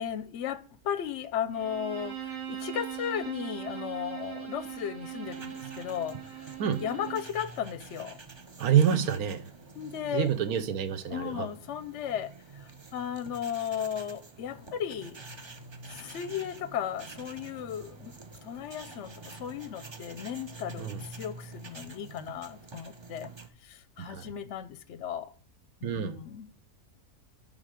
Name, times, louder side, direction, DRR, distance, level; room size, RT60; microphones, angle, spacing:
voice 1, 0.0-6.5 6.8-8.2 8.9-9.1 9.8-10.3 11.1-15.2 15.9-23.3 23.6-25.3 25.8-26.5, left 9 dB, 60° left, 0.8 m, -35 dB
Bowed string instrument, 1.5-7.3, right 10 dB, 85° right, 2.3 m, -40 dB
sound 1, 5.2-23.5, right 3 dB, 45° right, 0.3 m, -47 dB
voice 2, 8.6-9.5 10.1-11.5 20.8-21.0 24.0-24.3 25.8-26.2, right 8 dB, 70° right, 1.3 m, -27 dB
10.5 x 3.7 x 4.9 m
omnidirectional pair, 1.7 m